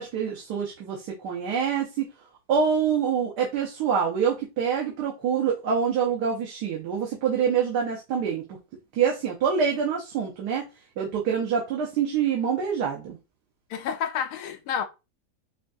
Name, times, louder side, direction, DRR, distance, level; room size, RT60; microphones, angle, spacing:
voice 1, 0.0-2.1 2.5-8.4 9.0-10.7 11.0-13.2, right 7 dB, 80° right, 1.4 m, -26 dB
voice 2, 13.7-14.8, left 8 dB, 80° left, 1.2 m, -29 dB
5.0 x 2.3 x 2.6 m
omnidirectional pair, 1.7 m